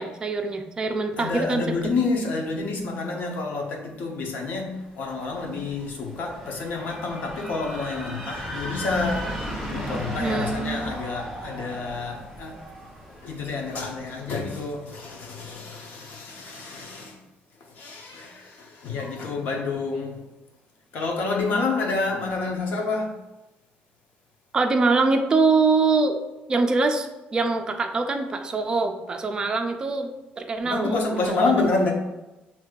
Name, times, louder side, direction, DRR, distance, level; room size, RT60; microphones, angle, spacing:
voice 1, 0.0-1.6 10.2-11.0 24.5-26.2 26.5-27.1 27.3-30.1 30.4-31.4, right 3 dB, 25° right, 5 dB, 0.4 m, -23 dB
voice 2, 1.2-9.3 9.7-12.6 13.1-17.2 17.6-20.2 20.9-23.2 30.6-31.9, left 3 dB, 65° left, 1 dB, 0.9 m, -28 dB
sound 1, 5.0-14.8, equal, 5° left, 1.5 m, -36 dB
6.2 x 2.9 x 2.4 m, 1.0 s
cardioid pair, 140°, 3 cm